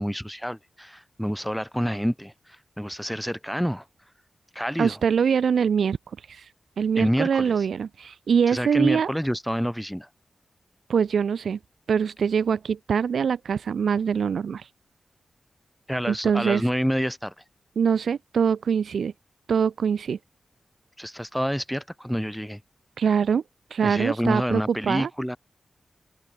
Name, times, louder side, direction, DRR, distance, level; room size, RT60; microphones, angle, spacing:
voice 1, 0.0-2.3 2.8-3.8 4.5-5.0 7.0-7.6 8.5-10.1 15.9-17.3 21.0-22.6 23.8-25.4, equal, ahead, 2.9 m, -27 dB
voice 2, 4.8-6.0 6.3-6.5 6.8-9.1 10.9-11.6 11.9-14.7 16.1-16.6 17.8-19.1 19.5-20.2 23.0-23.4 23.7-25.1, right 7 dB, 85° right, 0.9 m, -23 dB
wide cardioid pair, 85°, 0 cm